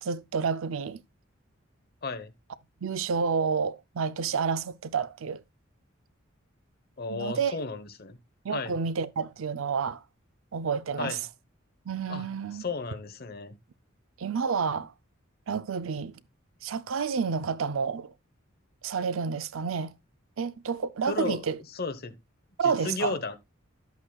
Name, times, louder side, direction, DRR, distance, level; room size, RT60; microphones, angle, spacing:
voice 1, 0.0-1.0 2.8-5.4 7.1-7.5 8.4-10.0 10.5-11.2 11.9-12.6 14.2-14.9 15.5-16.2 16.6-18.1 18.8-19.9 20.4-21.6 22.6-23.2, right 6 dB, 85° right, 0.5 m, -29 dB
voice 2, 2.0-2.3 7.0-8.2 8.5-8.7 11.0-11.2 12.1-12.3 12.6-13.5 21.1-21.4 21.7-22.1 22.6-23.4, left 4 dB, 50° left, 1.0 m, -33 dB
11.0 x 8.1 x 2.3 m
head